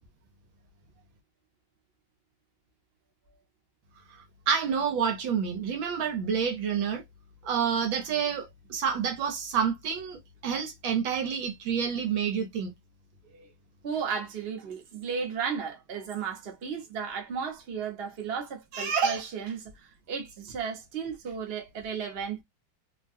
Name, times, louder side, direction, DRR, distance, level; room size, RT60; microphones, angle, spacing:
voice 1, 4.1-7.0 7.4-12.7, right 7 dB, 70° right, 1.4 m, -29 dB
voice 2, 13.8-22.4, right 6 dB, 40° right, 0.8 m, -33 dB
3.5 x 2.2 x 2.5 m
omnidirectional pair, 2.4 m